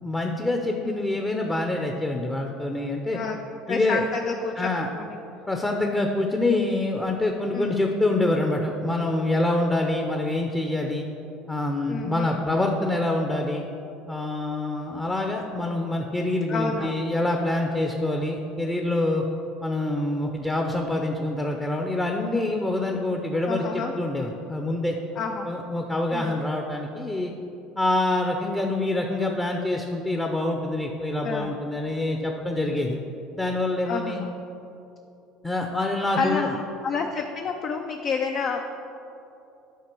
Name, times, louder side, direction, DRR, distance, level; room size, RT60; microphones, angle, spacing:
voice 1, 0.0-3.2 3.7-4.1 4.6-4.9 5.5-11.1 11.5-13.7 14.1-19.2 19.6-25.0 25.5-27.3 27.8-33.0 33.4-34.2 35.4-36.5, left 2 dB, 15° left, 2 dB, 0.7 m, -26 dB
voice 2, 3.7-4.7 5.0-5.2 7.5-7.8 11.9-12.5 16.5-17.0 23.5-23.9 25.2-25.5 26.1-26.4 31.2-31.6 33.9-34.3 36.2-38.7, left 5 dB, 50° left, 4 dB, 0.5 m, -29 dB
9.3 x 4.3 x 6.1 m, 2.8 s
supercardioid pair, 90°, 0 cm